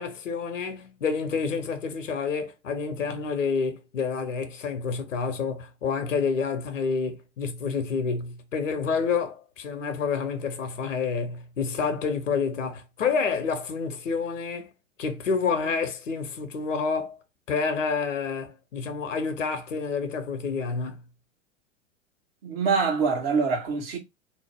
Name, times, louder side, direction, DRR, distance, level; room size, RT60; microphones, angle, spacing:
voice 1, 0.0-14.7 15.0-17.2 17.5-21.0, left 5 dB, 70° left, 0.9 m, -28 dB
voice 2, 22.4-24.0, right 5 dB, 50° right, 1.2 m, -24 dB
2.8 x 2.0 x 3.4 m
figure-of-eight pair, 100°, 38 cm